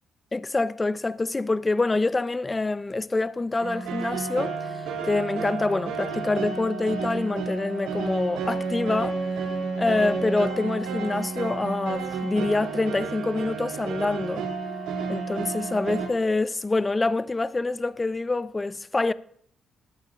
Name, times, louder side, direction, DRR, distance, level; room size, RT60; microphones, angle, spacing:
voice 1, 0.3-4.7 5.0-9.2 9.8-14.5 15.1-19.1, left 3 dB, 20° left, 0.4 m, -26 dB
sound 1, 3.6-16.1, right 4 dB, 90° right, 2.7 m, -31 dB
20.5 x 8.7 x 2.5 m
cardioid pair, 90°, 0 cm